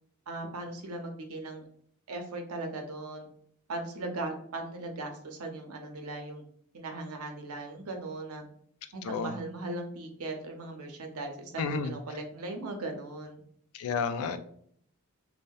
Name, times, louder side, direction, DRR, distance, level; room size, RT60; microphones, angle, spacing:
voice 1, 0.3-1.6 2.1-3.3 3.7-6.4 6.7-8.4 8.9-13.4, right 2 dB, 85° right, 3 dB, 0.6 m, -38 dB
voice 2, 9.0-9.3 11.6-11.9 13.7-14.4, left 5 dB, 85° left, 10 dB, 0.3 m, -31 dB
2.6 x 2.0 x 2.3 m, 0.63 s
head